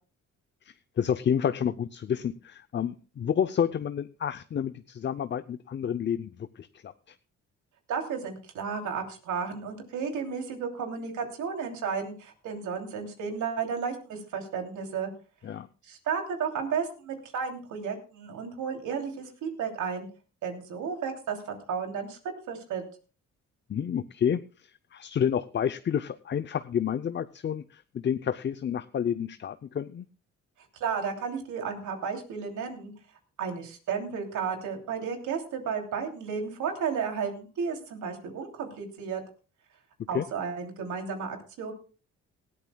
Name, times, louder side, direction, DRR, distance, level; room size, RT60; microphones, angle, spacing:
voice 1, 0.6-7.1 15.4-15.7 23.7-30.1 40.1-40.3, left 8 dB, 40° left, 12 dB, 0.6 m, -30 dB
voice 2, 7.9-15.1 15.8-20.1 20.4-22.2 22.5-22.8 30.8-32.9 33.4-39.2 40.1-41.7, right 6 dB, 80° right, 3 dB, 3.0 m, -33 dB
19.0 x 14.0 x 2.3 m, 0.35 s
cardioid pair, 90°, 30 cm